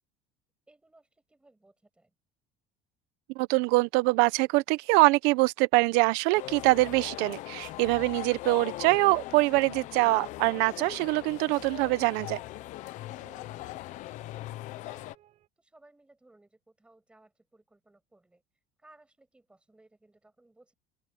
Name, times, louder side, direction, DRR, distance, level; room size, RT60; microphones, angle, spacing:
voice 1, 0.7-2.1 13.2-13.5 14.2-15.1 15.6-18.4 18.8-20.7, right 2 dB, 5° right, 6.2 m, -61 dB
voice 2, 3.4-12.4, right 23 dB, 70° right, 0.8 m, -24 dB
sound 1, 6.3-15.1, left 16 dB, 45° left, 0.7 m, -40 dB
sound 2, 10.5-15.5, right 13 dB, 40° right, 7.0 m, -58 dB
cardioid pair, 175°, 18 cm